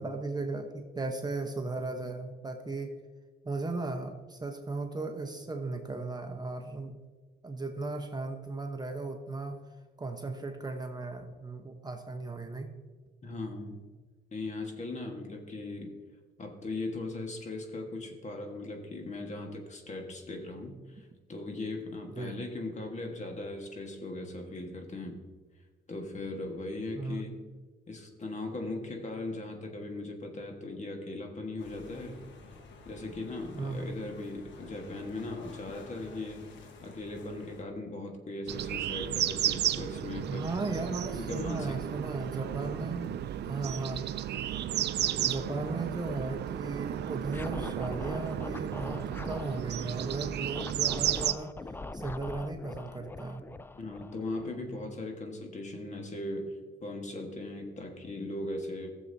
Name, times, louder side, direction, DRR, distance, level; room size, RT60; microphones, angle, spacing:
voice 1, 0.0-2.9 3.4-7.0 7.4-9.6 10.0-12.7 22.1-22.4 26.9-27.2 33.5-33.9 40.3-43.2 43.4-44.1 45.2-51.5 51.9-53.4, right 3 dB, 20° right, 4 dB, 1.0 m, -36 dB
voice 2, 13.2-13.8 14.3-15.9 16.4-25.2 25.9-27.4 27.9-32.2 32.8-36.5 36.8-40.5 41.1-41.8 53.7-58.9, left 2 dB, 35° left, 3 dB, 1.5 m, -39 dB
sound 1, 31.6-37.6, left 3 dB, 70° left, 1.3 m, -50 dB
sound 2, 38.5-51.3, right 11 dB, 60° right, 0.4 m, -33 dB
Scratching (performance technique), 47.3-49.6 50.5-54.9, left 2 dB, 10° left, 0.3 m, -42 dB
15.0 x 7.2 x 2.7 m, 1.4 s
cardioid pair, 90°, 20 cm